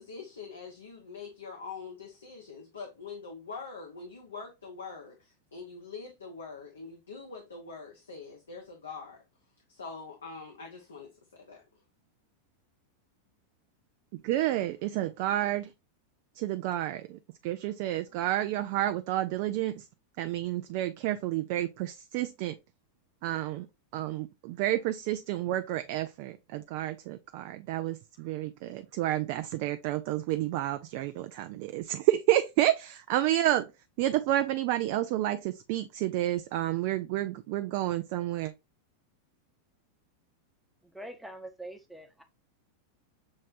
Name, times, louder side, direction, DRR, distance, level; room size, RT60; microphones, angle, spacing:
voice 1, 0.0-9.2 9.7-11.6, left 4 dB, 70° left, 0.9 m, -44 dB
voice 2, 14.1-15.7 16.3-19.9 20.2-22.6 23.2-23.7 23.9-33.7 34.0-38.5, right 14 dB, 45° right, 0.3 m, -30 dB
voice 3, 40.8-42.2, right 1 dB, ahead, 0.8 m, -44 dB
6.3 x 3.2 x 2.5 m
figure-of-eight pair, 90°, 0 cm